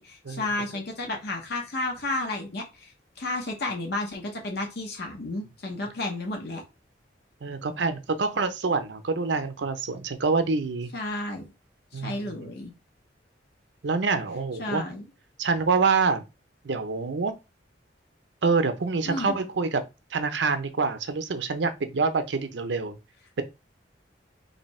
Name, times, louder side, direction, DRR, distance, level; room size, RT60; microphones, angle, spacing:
voice 1, 0.0-6.6 10.9-11.5 11.9-12.7 14.6-15.0 19.1-19.4, left 2 dB, 60° left, 0.8 m, -32 dB
voice 2, 7.4-10.9 11.9-12.5 13.8-14.8 15.4-16.2 16.6-17.3 18.4-19.8 20.1-23.0, right 4 dB, 65° right, 0.6 m, -26 dB
3.3 x 2.7 x 4.2 m
head